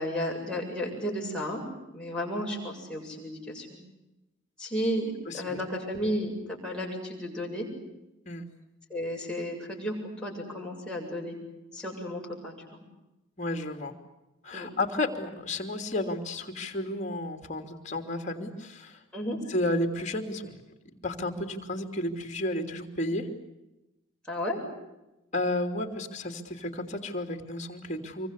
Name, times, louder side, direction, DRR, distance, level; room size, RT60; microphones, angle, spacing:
voice 1, 0.0-1.6 1.9-3.8 4.6-7.7 8.9-11.4 11.7-12.8 14.5-14.7 19.1-19.4 24.3-24.6, equal, 5° left, -3 dB, 7.7 m, -33 dB
voice 2, 5.3-5.6 8.2-8.5 13.4-13.9 14.4-19.0 19.5-20.5 21.0-23.3 25.3-28.3, left 1 dB, 35° left, 6 dB, 3.1 m, -32 dB
26.0 x 24.0 x 8.4 m, 0.96 s
head